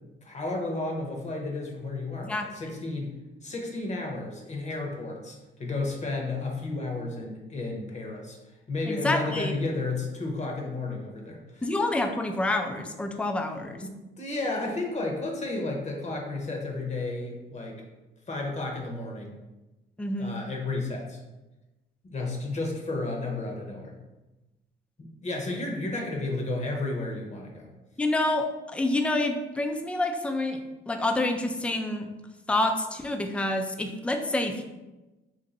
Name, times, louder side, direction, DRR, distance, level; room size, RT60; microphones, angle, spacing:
voice 1, 0.2-3.1 3.4-8.4 8.7-11.6 13.8-17.8 18.3-19.3 20.2-21.2 22.0-24.0 25.0-27.7, left 2 dB, 35° left, 0 dB, 0.8 m, -32 dB
voice 2, 8.9-9.5 11.6-13.8 20.0-20.4 28.0-30.6 30.9-32.1 32.5-34.6, left 2 dB, 5° left, 5 dB, 0.3 m, -27 dB
2.6 x 2.6 x 4.0 m, 1.1 s
cardioid pair, 90°, 20 cm